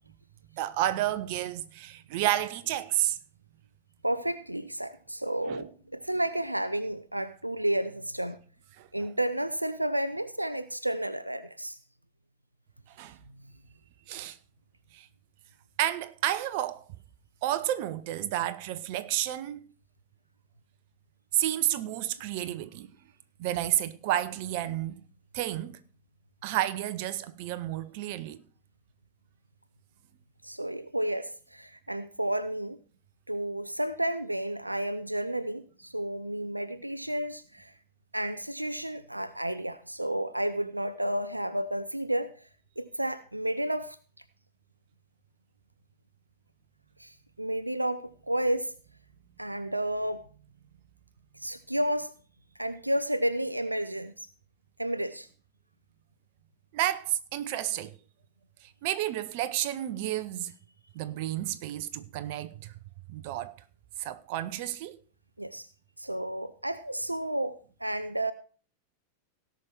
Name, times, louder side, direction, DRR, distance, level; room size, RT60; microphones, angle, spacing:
voice 1, 0.5-3.2 5.5-5.7 8.8-8.9 13.0-13.2 14.1-14.4 14.9-15.1 15.8-16.8 17.4-19.7 21.3-22.9 23.4-25.0 25.3-25.8 26.4-28.4 56.7-58.0 58.8-60.5 60.9-62.7 63.1-63.5 64.0-65.0, right 13 dB, 45° right, 0.7 m, -31 dB
voice 2, 4.0-8.4 8.9-11.8 30.4-32.8 33.3-37.7 38.1-42.5 42.8-44.0 47.0-48.7 49.4-50.3 51.4-52.1 52.6-54.3 54.8-55.3 65.4-65.7 66.0-68.3, right 1 dB, 85° right, 0.5 m, -31 dB
17.0 x 5.9 x 4.6 m
figure-of-eight pair, 90°, 0 cm